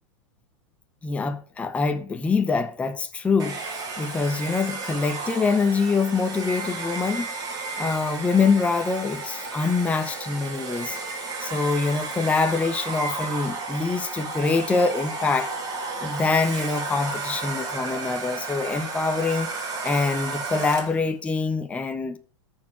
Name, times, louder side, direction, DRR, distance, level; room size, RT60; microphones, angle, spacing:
voice 1, 1.0-7.3 7.8-15.5 16.0-19.5 19.8-22.2, left 4 dB, 10° left, 0.7 m, -25 dB
Domestic sounds home sounds, 3.4-21.1, right 3 dB, 25° right, 2.6 m, -33 dB
13.5 x 4.5 x 6.0 m
hypercardioid pair, 140°, 16 cm